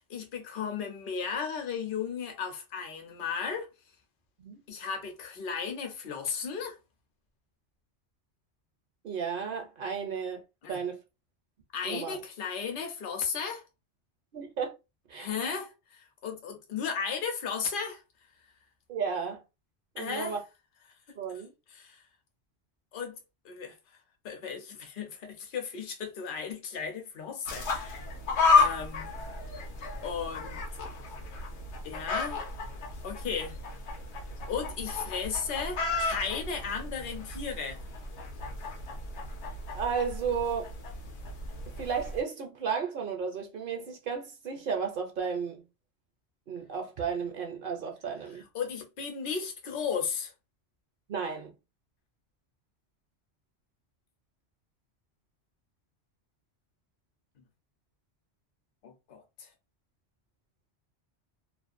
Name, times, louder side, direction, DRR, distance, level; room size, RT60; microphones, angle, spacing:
voice 1, 0.1-3.7 4.7-6.8 10.6-10.8 11.7-13.6 15.1-18.0 20.0-20.4 21.7-22.0 22.9-23.2 23.4-23.7 24.2-28.0 28.5-29.2 30.0-30.6 31.8-32.4 33.0-33.6 34.5-37.8 48.5-50.3 58.8-59.5, left 6 dB, 55° left, 0.8 m, -35 dB
voice 2, 9.0-10.4 10.7-11.0 11.8-12.2 14.3-14.8 15.1-15.3 18.9-19.4 20.0-20.4 21.2-21.5 39.7-40.7 41.8-45.6 46.5-48.4 51.1-51.5, right 6 dB, 60° right, 0.7 m, -33 dB
sound 1, 27.5-42.2, left 4 dB, 90° left, 1.0 m, -32 dB
2.5 x 2.1 x 2.4 m
omnidirectional pair, 1.1 m